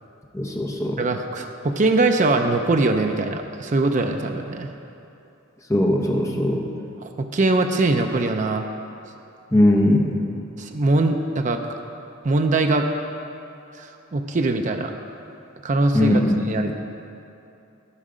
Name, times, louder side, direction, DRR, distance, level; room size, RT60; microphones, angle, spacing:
voice 1, 0.3-1.0 5.7-6.7 9.5-10.2 15.9-16.4, left 1 dB, 15° left, 0 dB, 0.9 m, -19 dB
voice 2, 1.0-4.7 7.0-8.7 10.6-11.8 12.2-12.9 13.8-14.9 15.6-16.8, right 2 dB, 40° right, 5 dB, 0.5 m, -22 dB
14.0 x 5.4 x 4.9 m, 2.8 s
head